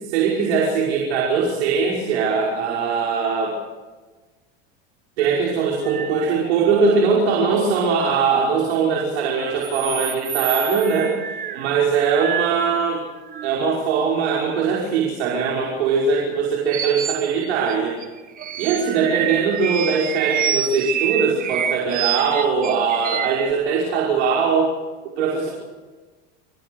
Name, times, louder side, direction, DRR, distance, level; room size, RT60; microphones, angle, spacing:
voice 1, 0.1-3.6 5.2-11.1 11.5-13.0 13.4-18.0 18.6-24.7 25.2-25.5, right 5 dB, 85° right, -3 dB, 5.6 m, -21 dB
sound 1, 5.2-5.4 5.8-7.7 8.1-8.3 9.3-13.7 14.8-14.9 15.5-15.6 16.2-16.3 16.7-17.3 17.7-17.8 18.0-23.5, right 9 dB, 25° right, 1.0 m, -28 dB
29.0 x 19.0 x 6.9 m, 1.3 s
supercardioid pair, 145°, 32 cm